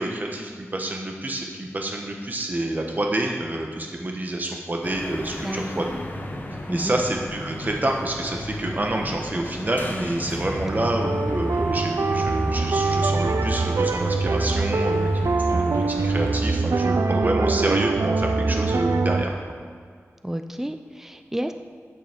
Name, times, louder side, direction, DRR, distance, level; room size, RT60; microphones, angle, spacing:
voice 1, 0.0-5.9 6.7-19.3, right 1 dB, 35° right, 1 dB, 1.3 m, -28 dB
sound 1, 4.8-16.3, left 1 dB, 35° left, 1.2 m, -37 dB
voice 2, 5.4-6.0 6.7-7.0 10.7-11.1 20.2-21.5, equal, 10° right, 7 dB, 0.6 m, -31 dB
sound 2, 5.9-13.9, left 1 dB, 75° left, 2.9 m, -39 dB
sound 3, 10.2-19.3, right 3 dB, 80° right, 0.6 m, -23 dB
11.0 x 9.0 x 5.2 m, 2.1 s
wide cardioid pair, 90°, 5 cm